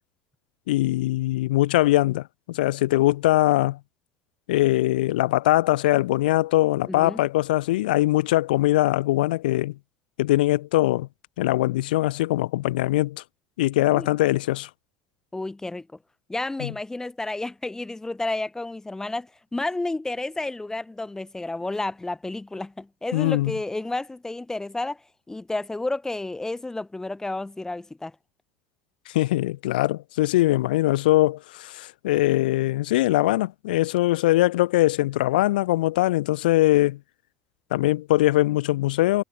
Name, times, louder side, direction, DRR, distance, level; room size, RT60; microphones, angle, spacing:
voice 1, 0.7-3.8 4.5-9.7 10.2-11.1 11.4-13.2 13.6-14.7 16.6-16.7 23.1-23.5 29.1-37.0 37.7-39.2, left 17 dB, 90° left, 1.5 m, -22 dB
voice 2, 6.9-7.2 13.9-14.1 15.3-15.9 16.3-25.0 25.3-28.1, left 2 dB, 10° left, 2.4 m, -31 dB
supercardioid pair, 95°, 5 cm